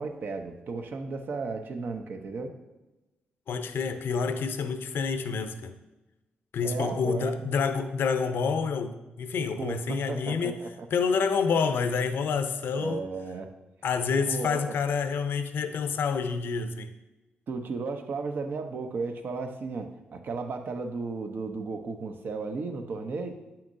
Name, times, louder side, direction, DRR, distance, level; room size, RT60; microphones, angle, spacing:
voice 1, 0.0-2.5 6.6-7.3 9.6-10.9 12.7-13.5 14.3-14.8 17.5-23.4, right 4 dB, 60° right, 5 dB, 0.8 m, -34 dB
voice 2, 3.5-5.7 6.5-10.6 10.9-13.0 13.8-16.9, left 5 dB, 75° left, 9 dB, 0.6 m, -28 dB
8.9 x 5.8 x 2.7 m, 1.0 s
cardioid pair, 60°, 4 cm